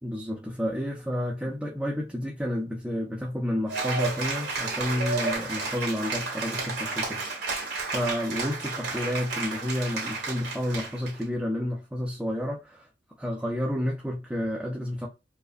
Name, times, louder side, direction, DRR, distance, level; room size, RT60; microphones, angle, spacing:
voice 1, 0.0-7.5 7.8-12.9 13.2-15.1, equal, 5° right, 0.5 m, -30 dB
Cheering / Applause, 3.7-11.2, right 3 dB, 70° right, 1.6 m, -32 dB
4.8 x 2.1 x 2.5 m
head